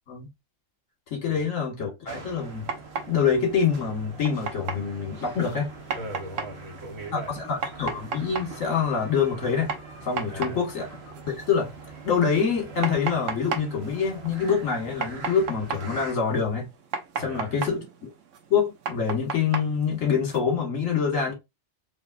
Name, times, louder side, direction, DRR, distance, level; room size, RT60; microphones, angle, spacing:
voice 1, 1.1-2.7 3.1-5.7 7.1-9.8 10.1-10.8 11.3-11.7 12.0-16.7 17.2-18.1 18.5-21.3, left 6 dB, 70° left, 2.0 m, -26 dB
sound 1, 2.1-16.1, right 3 dB, 50° right, 1.3 m, -43 dB
sound 2, 2.4-20.4, right 5 dB, 70° right, 1.1 m, -37 dB
voice 2, 5.9-7.3 10.2-10.6 17.1-17.6, right 1 dB, 85° right, 2.0 m, -39 dB
4.5 x 2.7 x 2.6 m
omnidirectional pair, 1.4 m